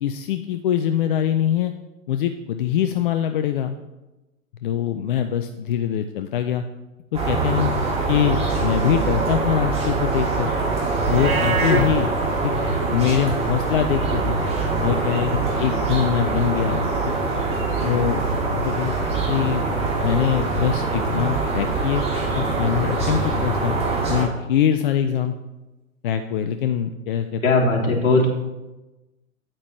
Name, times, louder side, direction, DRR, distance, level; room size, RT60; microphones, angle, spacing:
voice 1, 0.0-1.7 2.1-3.7 4.6-6.6 7.1-7.7 8.1-10.5 11.1-12.1 12.4-12.5 12.9-14.4 14.8-16.9 17.8-18.2 18.5-19.0 19.3-19.6 20.0-22.0 22.3-23.7 24.1-25.3 26.0-27.4, left 9 dB, 40° left, 8 dB, 0.5 m, -23 dB
sound 1, 7.1-24.2, right 3 dB, 15° right, 2.2 m, -23 dB
Livestock farm animals working animals, 11.0-11.9, right 2 dB, 90° right, 1.2 m, -24 dB
voice 2, 27.4-28.3, left 2 dB, 60° left, -3 dB, 2.7 m, -18 dB
9.0 x 8.7 x 3.2 m, 1.0 s
figure-of-eight pair, 105°, 41 cm